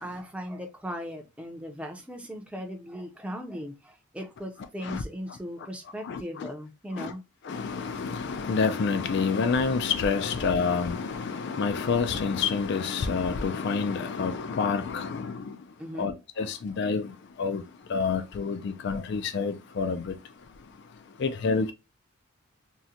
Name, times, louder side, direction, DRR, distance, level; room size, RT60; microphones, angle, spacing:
voice 1, 0.0-7.2 7.5-7.6 15.8-16.1 16.4-16.5, equal, 5° right, 0.5 m, -38 dB
voice 2, 6.0-6.5 7.0-7.1 7.5-15.5 16.0-17.1 17.4-17.6 17.9-20.1 21.2-21.7, left 5 dB, 50° left, 0.3 m, -28 dB
3.7 x 2.1 x 2.7 m
head